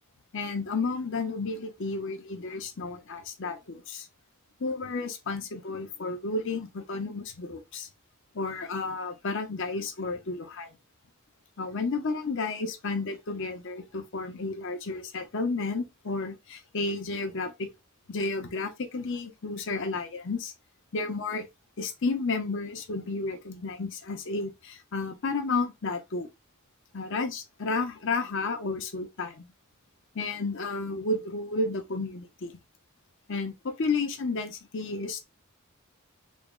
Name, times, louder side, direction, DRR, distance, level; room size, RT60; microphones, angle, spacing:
voice 1, 0.3-4.1 4.6-7.9 8.3-10.7 11.6-17.7 18.1-20.5 20.9-21.5 21.8-26.3 26.9-29.5 30.1-32.5 33.3-35.2, left 3 dB, 55° left, 0.7 m, -32 dB
3.5 x 2.1 x 3.6 m
head